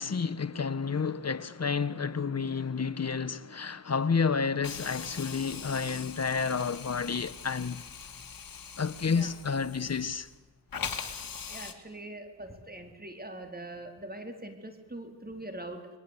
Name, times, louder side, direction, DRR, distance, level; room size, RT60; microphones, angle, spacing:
voice 1, 0.0-7.8 8.8-10.3, left 5 dB, 40° left, 1.5 m, -30 dB
Hiss, 4.6-10.4 10.7-11.7, left 6 dB, 55° left, 2.9 m, -41 dB
voice 2, 11.5-16.0, right 1 dB, 20° right, 4.2 m, -42 dB
29.5 x 21.5 x 8.4 m
cardioid pair, 55°, 41 cm